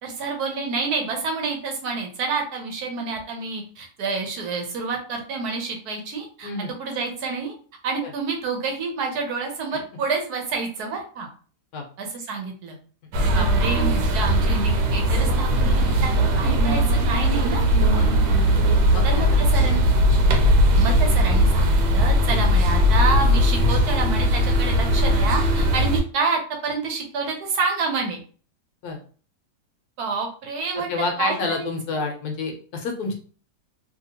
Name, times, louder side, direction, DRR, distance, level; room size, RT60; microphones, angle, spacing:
voice 1, 0.0-6.5 6.8-7.5 7.8-11.3 12.0-12.8 13.2-17.6 19.0-19.8 20.7-28.2 30.0-30.9 31.2-32.0, right 4 dB, 70° right, 3 dB, 1.2 m, -28 dB
sound 1, 13.1-26.0, equal, 85° right, 1.3 m, -19 dB
sound 2, 17.0-20.9, left 1 dB, 45° right, 1.1 m, -42 dB
voice 2, 18.9-19.4 28.8-29.0 30.9-33.1, left 3 dB, 70° left, 3 dB, 1.1 m, -28 dB
2.8 x 2.8 x 2.8 m, 0.41 s
omnidirectional pair, 1.8 m